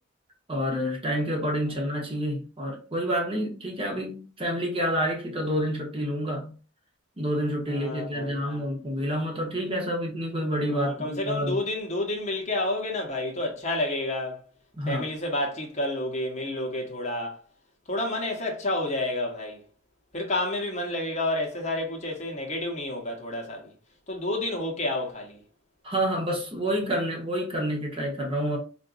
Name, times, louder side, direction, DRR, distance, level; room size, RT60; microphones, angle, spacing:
voice 1, 0.5-6.5 7.2-11.6 14.8-15.0 25.8-28.6, equal, 25° right, 0.8 m, -28 dB
voice 2, 7.7-8.7 10.7-14.4 14.9-17.4 17.9-19.6 20.1-23.7 24.1-25.4, left 1 dB, 35° left, 0.9 m, -30 dB
3.6 x 2.5 x 2.4 m
head